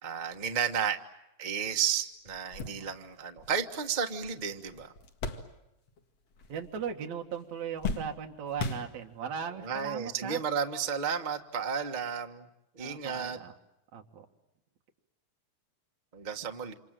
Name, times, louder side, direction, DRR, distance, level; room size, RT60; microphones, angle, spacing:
voice 1, 0.0-1.0 1.4-4.9 9.5-12.5 12.7-13.4 16.1-16.7, right 7 dB, 40° right, 5 dB, 0.6 m, -32 dB
sound 1, 1.8-1.9 2.3-6.0 6.3-7.0 7.3-9.4 10.1-10.2 11.5-11.7, left 3 dB, 55° left, 3.0 m, -39 dB
voice 2, 6.5-10.4 12.8-13.5 13.9-14.3, right 7 dB, 70° right, 3 dB, 3.2 m, -38 dB
28.5 x 27.5 x 7.7 m, 0.91 s
omnidirectional pair, 3.4 m